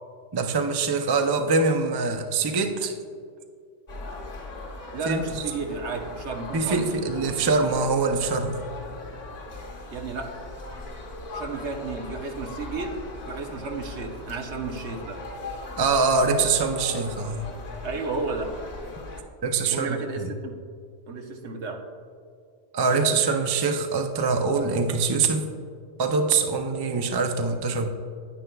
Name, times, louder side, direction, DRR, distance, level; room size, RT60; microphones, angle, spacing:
voice 1, 0.3-2.9 5.1-5.4 6.5-8.6 15.8-17.4 19.4-20.3 22.7-25.5 26.0-27.9, right 4 dB, 40° right, 6 dB, 0.3 m, -24 dB
sound 1, 3.9-19.2, left 2 dB, 40° left, 0.9 m, -39 dB
voice 2, 4.9-6.8 9.9-10.3 11.3-12.9 13.3-15.2 17.8-18.5 19.7-20.5 21.1-21.8, right 4 dB, 70° right, 3 dB, 1.1 m, -32 dB
9.7 x 9.4 x 2.3 m, 2.2 s
omnidirectional pair, 1.2 m